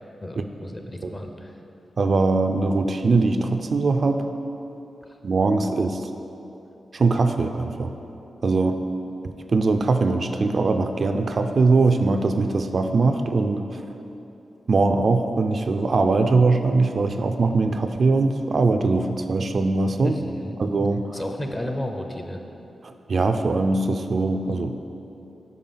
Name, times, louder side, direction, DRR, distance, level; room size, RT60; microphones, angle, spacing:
voice 1, 0.2-1.5 20.0-20.6 21.1-22.4, left 1 dB, 25° left, 4 dB, 0.7 m, -32 dB
voice 2, 2.0-4.3 5.2-6.1 6.9-7.9 8.4-8.8 9.5-13.8 14.7-20.2 20.6-21.1 22.8-24.7, right 3 dB, 60° right, 7 dB, 0.3 m, -21 dB
5.3 x 4.9 x 5.6 m, 2.9 s
cardioid pair, 55°, 0 cm